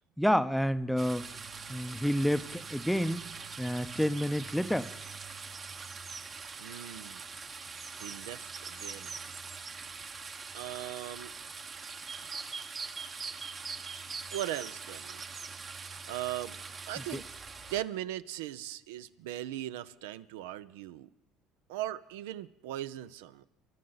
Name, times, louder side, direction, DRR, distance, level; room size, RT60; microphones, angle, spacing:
voice 1, 0.2-1.3 1.7-3.2 3.6-4.9 17.1-17.2, equal, ahead, 0.6 m, -29 dB
sound 1, 1.0-17.8, right 5 dB, 40° right, 1.0 m, -43 dB
voice 2, 6.6-7.2 8.0-9.3 10.5-11.3 14.3-15.4 16.1-17.2 17.7-21.1 21.7-23.4, right 13 dB, 80° right, 0.5 m, -39 dB
28.0 x 13.0 x 4.0 m
hypercardioid pair, 70°, 0 cm